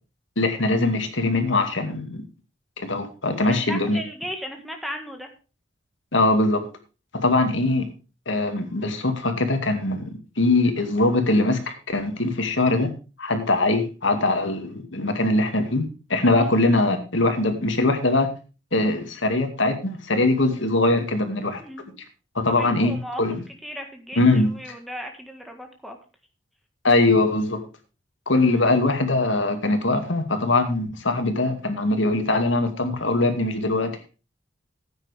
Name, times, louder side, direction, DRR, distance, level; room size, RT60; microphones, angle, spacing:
voice 1, 0.4-2.2 2.8-4.0 6.1-6.6 7.2-7.9 8.3-12.9 13.2-18.3 18.7-21.6 22.3-23.4 24.2-24.5 26.8-27.6 28.3-34.1, left 2 dB, 70° left, 6 dB, 2.3 m, -22 dB
voice 2, 3.4-5.3 16.3-16.5 21.6-21.9 22.5-23.2 23.6-26.0, equal, ahead, 3 dB, 1.7 m, -36 dB
14.5 x 9.2 x 3.5 m, 0.32 s
head